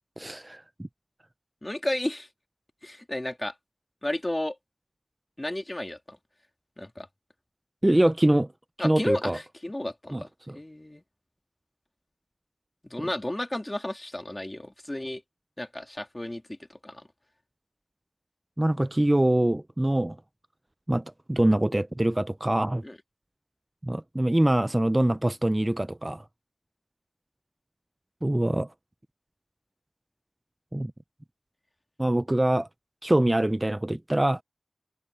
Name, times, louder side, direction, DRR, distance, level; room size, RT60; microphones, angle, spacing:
voice 1, 0.2-0.6 7.8-8.5 8.8-9.4 10.1-10.6 13.0-13.1 18.6-20.2 20.9-22.8 23.8-26.2 28.2-28.7 30.7-30.9 32.0-32.7 33.0-34.4, right 1 dB, 25° right, 0.5 m, -24 dB
voice 2, 1.6-2.3 2.8-3.5 4.0-4.5 5.4-6.2 6.8-7.1 8.8-10.3 10.5-11.0 12.8-15.2 15.6-16.4 16.8-17.1 22.8-23.0, left 1 dB, 30° left, 3.1 m, -32 dB
wide cardioid pair, 40°, 0 cm